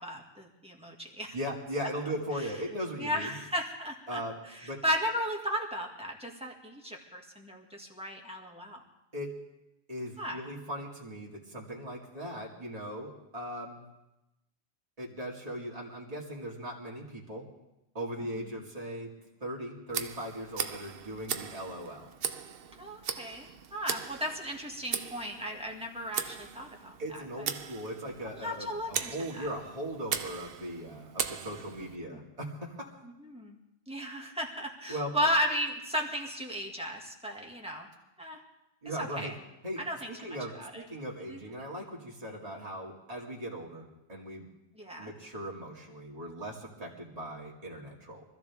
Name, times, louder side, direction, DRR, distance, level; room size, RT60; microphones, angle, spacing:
voice 1, 0.0-1.3 1.8-1.9 2.4-2.5 3.0-8.8 10.2-10.4 18.2-18.6 22.8-27.5 28.4-29.5 32.0-32.2 33.0-33.6 33.9-37.9 38.2-38.4 39.0-39.3 39.8-40.8 41.3-41.5 44.8-45.1, equal, 5° right, 0 dB, 2.0 m, -35 dB
voice 2, 1.3-3.3 4.1-4.8 9.1-9.4 9.9-13.9 15.0-17.5 17.9-22.1 27.0-32.9 34.9-35.2 38.8-39.3 39.6-44.5 45.0-48.2, equal, 35° right, -3 dB, 2.3 m, -39 dB
Tick, 19.9-32.0, right 7 dB, 60° right, 0.9 m, -39 dB
24.0 x 14.0 x 3.6 m, 0.92 s
omnidirectional pair, 1.1 m